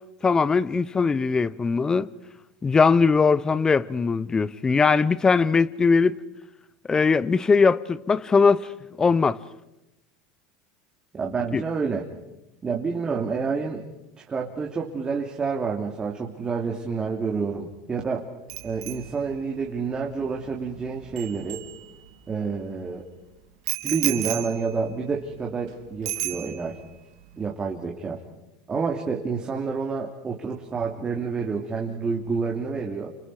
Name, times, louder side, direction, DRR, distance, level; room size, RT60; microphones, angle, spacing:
voice 1, 0.2-2.1 2.6-6.2 6.9-8.7 9.0-9.4 11.5-11.6, left 5 dB, 20° left, 0.9 m, -20 dB
voice 2, 11.1-12.0 12.6-13.9 14.3-18.3 18.6-21.6 22.3-23.1 23.8-26.8 27.4-28.2 28.7-33.1, right 5 dB, 25° right, 3.0 m, -28 dB
Bicycle bell, 18.5-22.3 23.7-25.7 26.1-26.9 27.2-27.5, right 16 dB, 75° right, 2.6 m, -34 dB
29.5 x 29.0 x 5.0 m
supercardioid pair, 110°, 3 cm